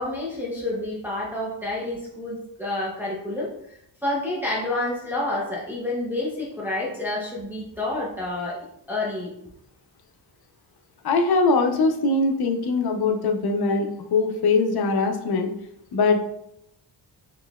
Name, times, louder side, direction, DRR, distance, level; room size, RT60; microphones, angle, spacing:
voice 1, 0.0-3.8 4.0-8.6 8.9-9.3, left 2 dB, 5° right, -5 dB, 0.7 m, -29 dB
voice 2, 11.0-15.5 15.9-16.2, left 3 dB, 60° left, 4 dB, 0.6 m, -22 dB
3.8 x 3.0 x 2.3 m, 0.76 s
cardioid pair, 110°, 44 cm